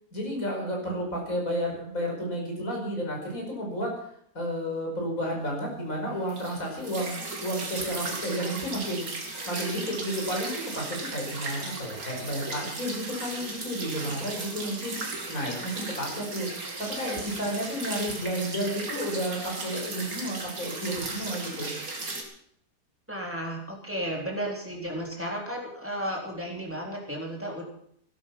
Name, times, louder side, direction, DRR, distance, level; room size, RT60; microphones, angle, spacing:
voice 1, 0.1-4.1 4.3-16.5 16.8-21.7, equal, 55° left, 0 dB, 5.7 m, -32 dB
sound 1, 6.3-22.2, right 3 dB, 60° right, 3.0 m, -36 dB
voice 2, 23.1-27.6, equal, 5° right, -1 dB, 3.7 m, -33 dB
16.0 x 12.5 x 5.8 m, 0.69 s
omnidirectional pair, 1.7 m